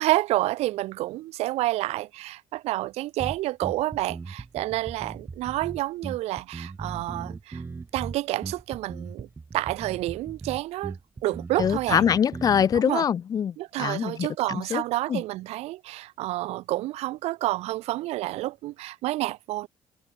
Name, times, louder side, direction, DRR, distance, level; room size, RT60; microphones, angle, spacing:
voice 1, 0.0-7.6 7.9-9.3 9.5-11.0 11.2-12.0 12.8-13.0 13.6-19.7, right 17 dB, 85° right, 1.8 m, -29 dB
sound 1, 3.2-12.8, right 4 dB, 20° right, 0.7 m, -38 dB
voice 2, 11.6-14.8 15.1-15.2, left 8 dB, 35° left, 0.4 m, -24 dB
cardioid pair, 115°, 11 cm